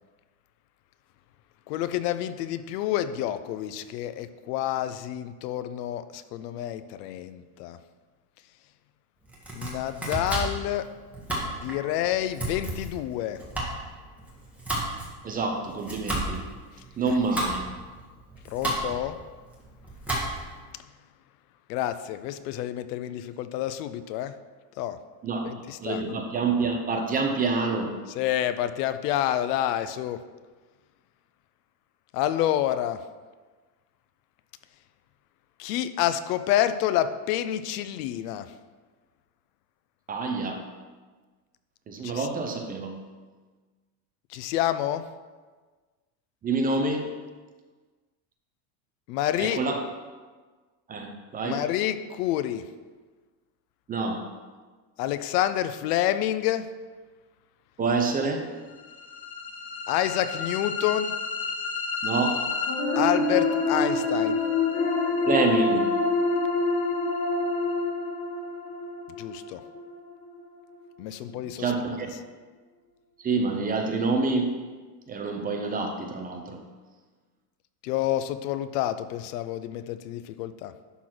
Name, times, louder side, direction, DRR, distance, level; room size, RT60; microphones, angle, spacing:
voice 1, 1.7-7.8 9.5-10.9 11.4-13.4 17.1-17.2 18.5-19.2 21.7-24.3 24.8-25.0 25.4-26.0 28.1-30.2 32.1-33.0 35.6-38.5 42.0-42.3 44.3-45.0 49.1-49.6 51.4-52.7 55.0-56.7 59.9-61.2 63.0-64.4 69.2-69.6 71.0-71.7 72.0-72.1 77.8-80.7, left 12 dB, 80° left, 12 dB, 0.7 m, -28 dB
Domestic sounds home sounds, 9.2-20.6, right 1 dB, 5° right, 1.7 m, -33 dB
voice 2, 15.2-16.4 17.0-17.6 25.2-25.5 25.8-27.9 40.1-40.6 41.9-43.0 46.4-47.1 49.4-49.8 50.9-51.6 53.9-54.3 57.8-58.5 62.0-62.4 65.3-65.9 71.6-72.1 73.2-74.5 75.1-76.6, right 3 dB, 20° right, 4 dB, 0.7 m, -27 dB
sound 1, 58.8-70.9, left 3 dB, 55° left, 1.9 m, -27 dB
11.0 x 4.1 x 6.1 m, 1.4 s
cardioid pair, 160°, 47 cm